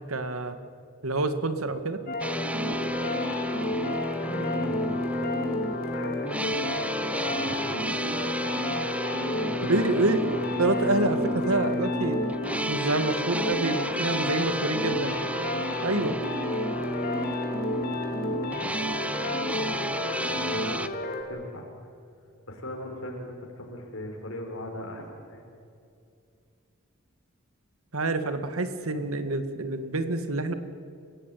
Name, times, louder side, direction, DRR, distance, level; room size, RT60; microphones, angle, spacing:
voice 1, 0.1-0.6 1.0-2.0 9.7-10.2 10.6-12.2 12.7-15.1 15.8-16.2 27.9-30.5, right 2 dB, 90° right, 10 dB, 2.0 m, -27 dB
sound 1, 2.1-21.2, left 1 dB, 45° left, 3.0 m, -32 dB
sound 2, 2.2-20.9, equal, 5° right, 0.9 m, -31 dB
voice 2, 4.1-5.0 5.9-7.8 9.4-9.8 14.4-15.3 18.6-19.0 20.3-20.9 21.3-21.7 22.5-25.4, left 1 dB, 70° left, 0 dB, 4.5 m, -40 dB
29.5 x 16.5 x 9.2 m, 2.4 s
head